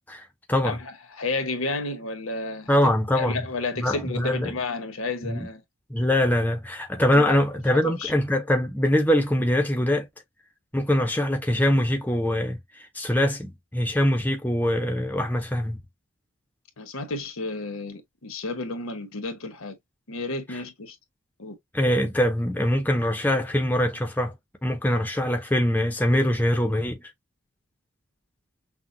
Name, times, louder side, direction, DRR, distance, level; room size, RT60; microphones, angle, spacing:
voice 1, 0.1-0.8 2.7-3.5 3.8-4.5 5.2-5.5 5.9-10.1 10.7-15.8 20.5-20.6 21.7-24.3 24.6-27.0, left 1 dB, 10° left, 0.6 m, -23 dB
voice 2, 0.6-2.7 3.2-5.6 7.1-7.4 7.8-8.1 16.8-19.8 20.1-21.0 21.4-21.6, left 3 dB, 80° left, 1.2 m, -31 dB
6.1 x 2.2 x 2.7 m
head